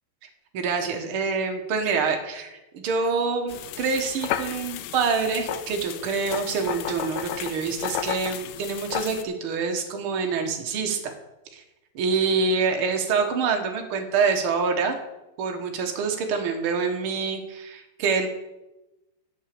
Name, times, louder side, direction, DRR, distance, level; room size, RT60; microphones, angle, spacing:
voice 1, 0.5-11.1 11.5-11.6 11.9-15.0 15.4-18.3, right 5 dB, 65° right, 3 dB, 1.3 m, -26 dB
sound 1, 3.5-9.2, left 11 dB, 80° left, 2.0 m, -33 dB
8.2 x 8.1 x 7.5 m, 0.99 s
omnidirectional pair, 4.2 m